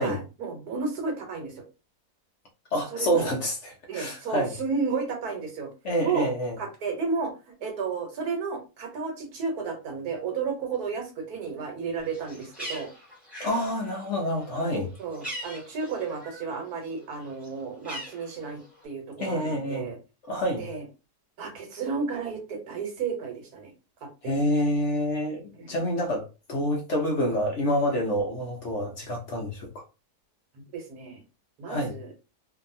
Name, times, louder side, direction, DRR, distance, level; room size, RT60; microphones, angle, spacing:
voice 1, 0.0-1.6 2.9-3.3 3.9-5.7 6.0-6.3 6.6-12.9 15.0-20.0 20.6-20.8 21.4-23.7 24.0-24.3 25.5-25.7 30.5-31.2 31.6-32.1, right 5 dB, 70° right, 1.4 m, -32 dB
voice 2, 2.7-4.5 5.8-6.6 13.4-14.9 19.2-19.9 20.3-20.6 24.2-29.8 31.7-32.0, equal, 60° left, 0.8 m, -27 dB
Bird, 12.0-16.6 16.9-18.8, equal, ahead, 1.5 m, -42 dB
2.8 x 2.7 x 2.5 m
omnidirectional pair, 1.7 m